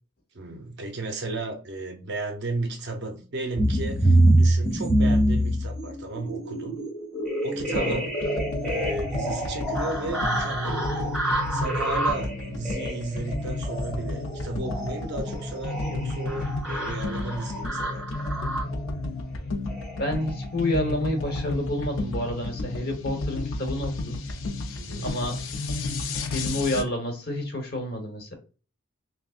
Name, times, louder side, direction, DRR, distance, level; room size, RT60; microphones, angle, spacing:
voice 1, 0.3-6.8 7.4-8.1 8.6-11.1 11.5-18.2 24.8-25.1, right 2 dB, 50° right, 0.7 m, -34 dB
sound 1, 3.6-18.9 19.7-19.9 20.2-20.4 20.7-20.9 21.2-21.4, right 1 dB, 5° right, 2.0 m, -26 dB
sound 2, 7.5-26.8, left 2 dB, 65° left, 0.6 m, -32 dB
voice 2, 7.7-8.0 20.0-24.2 25.0-28.3, left 1 dB, 45° left, 1.1 m, -29 dB
5.9 x 2.2 x 2.4 m
head